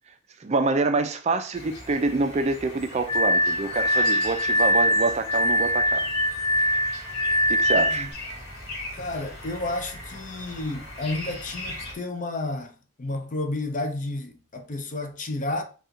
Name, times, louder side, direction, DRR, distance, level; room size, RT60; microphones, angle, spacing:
voice 1, 0.4-6.0 7.5-8.1, right 3 dB, 35° right, 0.4 m, -26 dB
sound 1, 1.5-11.9, left 1 dB, 55° left, 1.7 m, -39 dB
Glass, 3.1-8.1, equal, 25° left, 1.1 m, -23 dB
voice 2, 7.7-8.1 8.9-15.6, left 2 dB, 40° left, 0.6 m, -31 dB
4.2 x 2.3 x 3.6 m
head